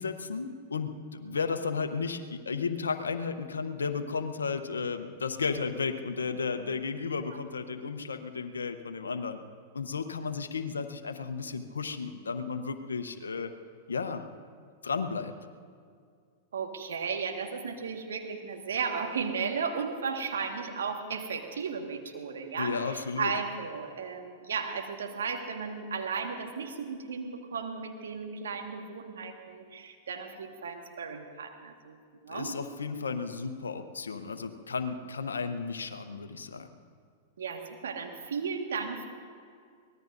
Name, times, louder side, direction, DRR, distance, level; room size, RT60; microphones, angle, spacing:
voice 1, 0.0-9.4 9.7-13.5 13.9-14.3 14.8-15.3 22.6-23.3 32.3-36.7, left 5 dB, 90° left, 7 dB, 0.8 m, -33 dB
voice 2, 16.5-32.0 32.2-32.6 37.4-39.0, right 5 dB, 80° right, 3 dB, 1.6 m, -35 dB
24.0 x 18.5 x 2.6 m, 2.2 s
hypercardioid pair, 105°, 0 cm